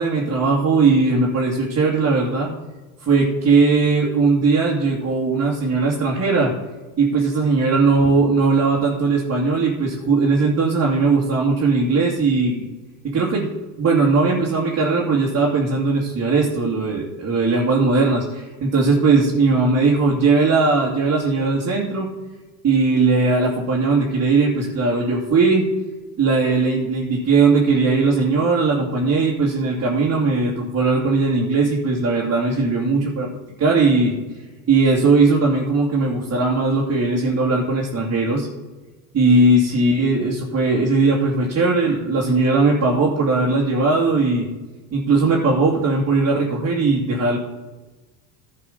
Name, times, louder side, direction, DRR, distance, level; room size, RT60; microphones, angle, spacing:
voice 1, 0.0-2.5 3.0-6.5 7.0-12.6 13.0-13.5 13.8-22.1 22.6-25.7 26.2-33.3 33.6-34.2 34.7-38.5 39.1-44.5 44.9-47.4, right 3 dB, 35° right, -4 dB, 2.5 m, -19 dB
11.5 x 5.7 x 5.5 m, 1.2 s
supercardioid pair, 90°, 46 cm